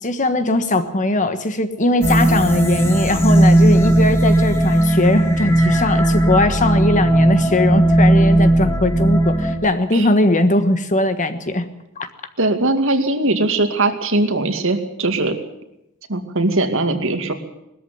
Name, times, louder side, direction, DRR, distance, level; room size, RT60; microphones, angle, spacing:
voice 1, 0.0-11.7 12.0-12.1, left 1 dB, 35° left, 9 dB, 1.4 m, -19 dB
sound 1, 2.0-9.5, right 1 dB, 10° left, 2.8 m, -16 dB
voice 2, 12.4-15.4 16.1-17.3, right 2 dB, 65° right, 6 dB, 2.3 m, -20 dB
20.5 x 13.5 x 9.4 m, 0.86 s
head